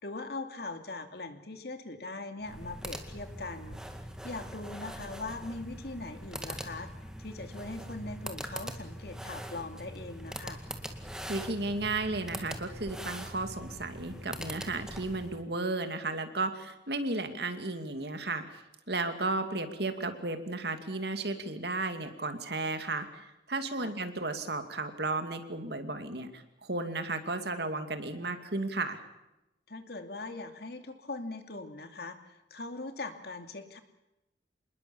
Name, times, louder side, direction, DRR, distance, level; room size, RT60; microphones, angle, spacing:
voice 1, 0.0-3.8 4.2-6.9 7.2-10.6 19.2-19.3 23.8-24.0 29.7-33.8, left 2 dB, 55° left, 7 dB, 2.5 m, -41 dB
sound 1, 2.4-15.4, equal, 5° right, 2.0 m, -42 dB
voice 2, 11.3-18.6 18.9-29.0, right 2 dB, 60° right, 8 dB, 2.5 m, -34 dB
27.0 x 20.5 x 7.1 m, 0.93 s
head